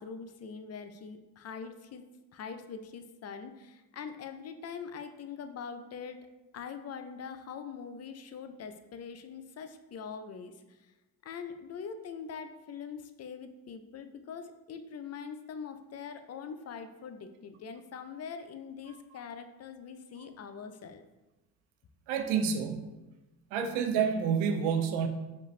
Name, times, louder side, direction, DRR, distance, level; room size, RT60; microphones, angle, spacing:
voice 1, 0.0-6.3 6.5-10.8 11.2-21.0, left 6 dB, 35° left, 8 dB, 0.4 m, -43 dB
voice 2, 22.1-22.9 23.5-25.1, right 6 dB, 85° right, 5 dB, 0.6 m, -28 dB
5.1 x 2.5 x 3.1 m, 1.1 s
supercardioid pair, 70°, 47 cm